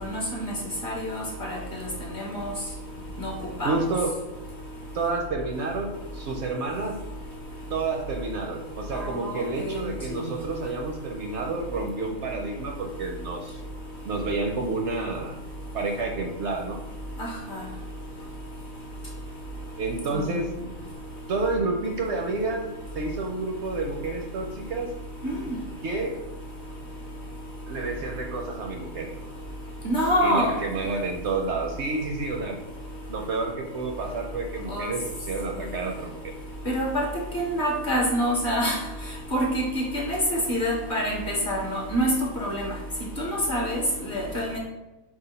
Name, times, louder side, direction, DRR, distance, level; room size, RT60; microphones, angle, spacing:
voice 1, 0.0-0.5 0.8-1.2 1.5-1.6 2.1-2.5 3.2-3.3 3.6-3.9 8.9-9.8 17.5-17.6 20.1-20.3 25.2-25.3 29.8-30.5 34.7-34.9 36.7-37.1 37.3-38.8 39.3-42.1 42.4-42.7 43.2-44.6, equal, 45° left, -1 dB, 0.8 m, -26 dB
voice 2, 3.6-4.1 4.9-7.0 7.7-13.6 14.0-15.4 15.7-16.8 19.8-20.5 21.3-24.9 25.8-26.2 27.7-29.1 30.2-32.6 33.1-36.3, right 3 dB, 65° right, 2 dB, 0.7 m, -29 dB
4.9 x 2.4 x 3.9 m, 1.0 s
omnidirectional pair, 1.4 m